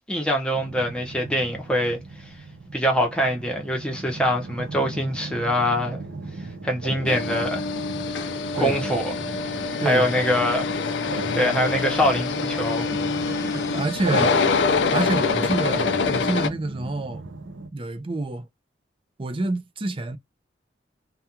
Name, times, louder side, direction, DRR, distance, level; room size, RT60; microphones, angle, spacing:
voice 1, 0.1-2.0 2.7-6.0 6.6-7.7 8.6-9.2 9.8-10.7 11.4-12.9, equal, 5° left, 0.8 m, -23 dB
sound 1, 0.5-17.7, right 2 dB, 85° right, 0.6 m, -37 dB
sound 2, 7.1-16.5, left 4 dB, 70° left, 0.4 m, -25 dB
voice 2, 8.6-8.9 9.8-10.2 13.3-14.4 14.9-17.2 17.7-18.5 19.2-20.2, right 2 dB, 30° right, 0.5 m, -28 dB
2.4 x 2.3 x 2.8 m
head